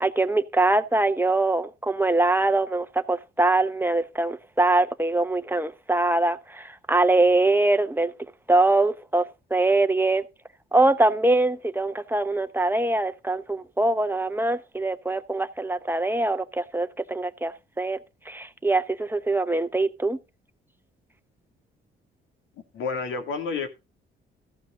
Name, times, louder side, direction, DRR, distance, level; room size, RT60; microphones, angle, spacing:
voice 1, 0.0-8.1 8.5-9.2 9.5-10.2 10.7-18.0 18.3-20.2, right 2 dB, 10° right, 0.9 m, -23 dB
voice 2, 22.7-23.7, left 4 dB, 85° left, 2.6 m, -29 dB
14.0 x 8.1 x 3.8 m
cardioid pair, 90°, 20 cm